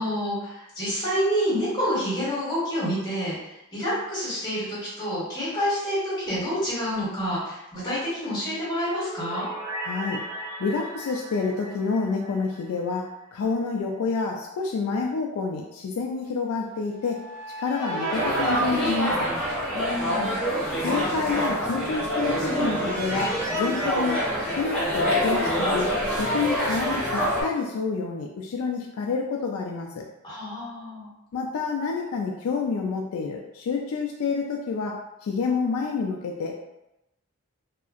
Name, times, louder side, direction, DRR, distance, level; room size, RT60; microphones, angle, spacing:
voice 1, 0.0-9.5 19.7-20.3 30.2-31.1, equal, 20° left, -10 dB, 1.4 m, -28 dB
sound 1, 8.7-13.0 13.3-13.4 16.9-20.0 22.0-25.4, right 2 dB, 50° right, 0.8 m, -36 dB
voice 2, 9.8-10.2 10.6-17.2 17.6-19.3 20.8-24.2 24.5-25.9 26.2-30.0 31.3-36.5, left 4 dB, 70° left, 1 dB, 0.3 m, -28 dB
sound 2, 18.1-27.4, equal, 5° left, 0.8 m, -26 dB
2.7 x 2.4 x 2.5 m, 0.89 s
head